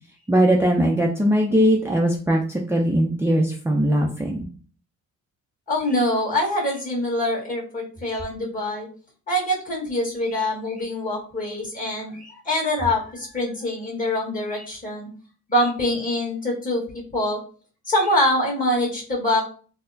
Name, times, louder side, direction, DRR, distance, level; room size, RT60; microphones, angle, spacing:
voice 1, 0.3-4.5, equal, 10° right, -1 dB, 0.5 m, -20 dB
voice 2, 5.7-8.9 9.3-15.1 15.5-17.4 17.8-19.4, left 1 dB, 25° left, -4 dB, 1.6 m, -24 dB
4.0 x 2.1 x 2.7 m, 0.41 s
cardioid pair, 90°, 30 cm